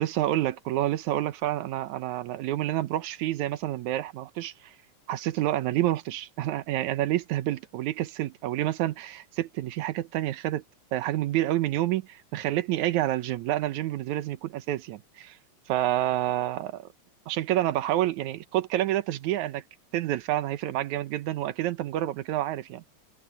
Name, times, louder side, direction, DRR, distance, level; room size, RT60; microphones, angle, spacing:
voice 1, 0.0-4.7 5.1-10.6 10.9-15.4 15.7-16.9 17.3-19.6 19.9-22.8, right 14 dB, 85° right, 2.3 m, -28 dB
omnidirectional pair, 3.3 m